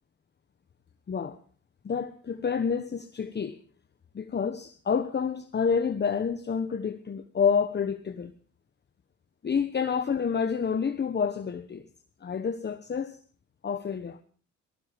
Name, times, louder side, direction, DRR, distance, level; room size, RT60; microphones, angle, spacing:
voice 1, 1.1-1.4 1.8-3.6 4.1-8.3 9.4-11.8 12.2-13.2 13.6-14.2, left 6 dB, 35° left, 1.2 m, -28 dB
18.5 x 14.5 x 5.1 m
cardioid pair, 90°, 30 cm